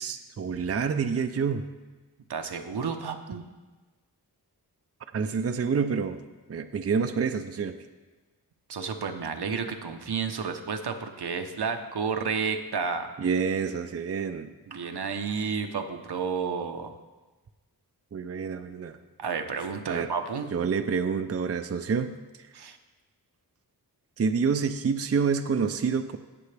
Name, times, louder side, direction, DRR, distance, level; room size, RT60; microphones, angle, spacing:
voice 1, 0.0-1.7 5.1-6.2 6.5-7.8 13.2-14.5 18.1-19.0 19.9-20.1 20.5-22.2 24.2-26.2, right 5 dB, 40° right, 8 dB, 0.5 m, -27 dB
voice 2, 2.3-3.4 8.7-13.1 14.7-16.9 19.2-20.5 22.5-22.8, right 5 dB, 80° right, 6 dB, 0.9 m, -31 dB
17.5 x 6.9 x 3.4 m, 1.2 s
wide cardioid pair, 90°, 39 cm